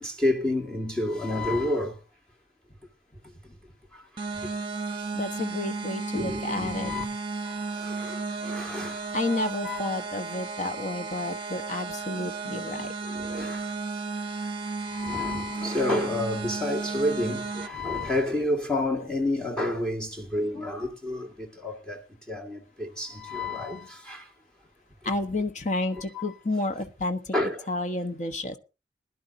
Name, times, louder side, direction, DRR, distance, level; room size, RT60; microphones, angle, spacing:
voice 1, 0.0-1.9 6.1-7.0 8.4-8.9 9.6-9.8 13.2-13.6 15.0-21.3 21.6-22.0 22.3-24.2 26.1-26.3 27.3-27.6, left 1 dB, 5° left, 1.8 m, -29 dB
sound 1, 4.2-17.7, right 4 dB, 30° right, 1.2 m, -34 dB
voice 2, 5.1-6.9 9.1-12.9 25.0-27.3 27.7-28.6, left 2 dB, 40° left, 1.1 m, -30 dB
21.0 x 11.5 x 2.7 m
head